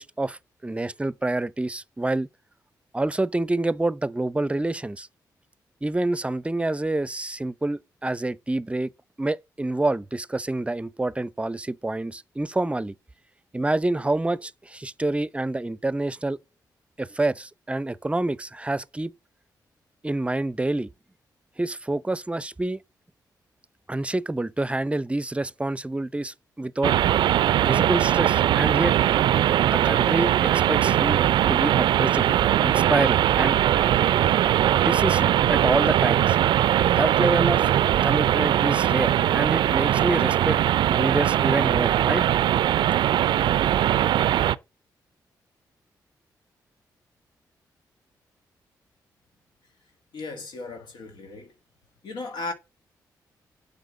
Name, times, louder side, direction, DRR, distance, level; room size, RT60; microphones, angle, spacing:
voice 1, 0.0-2.3 2.9-5.1 5.8-8.9 9.2-12.9 13.5-16.4 17.0-19.1 20.0-20.9 21.6-22.8 23.9-26.9 27.6-29.0 29.6-31.2 31.5-33.6 34.7-36.4 37.0-37.7 38.0-40.6 40.9-42.2, right 2 dB, 15° right, 0.5 m, -27 dB
sound 1, 26.8-44.5, right 11 dB, 85° right, 0.4 m, -21 dB
voice 2, 50.1-51.5 52.0-52.5, left 3 dB, 80° left, 1.7 m, -36 dB
7.8 x 5.6 x 7.2 m
cardioid pair, 65°, 8 cm